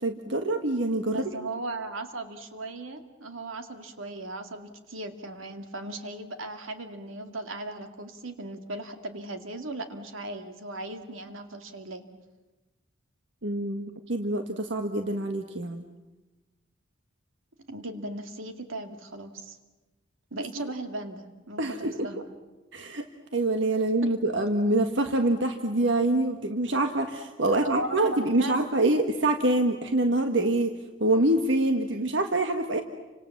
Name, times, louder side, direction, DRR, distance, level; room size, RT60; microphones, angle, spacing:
voice 1, 0.0-1.3 13.4-15.8 20.6-20.7 21.6-22.1 22.7-23.0 23.3-30.7 31.0-32.8, right 2 dB, 65° right, 6 dB, 1.5 m, -25 dB
voice 2, 1.1-12.1 17.7-19.6 20.3-22.2 27.5-28.6, right 2 dB, 85° right, 7 dB, 2.3 m, -37 dB
30.0 x 25.5 x 7.3 m, 1.1 s
head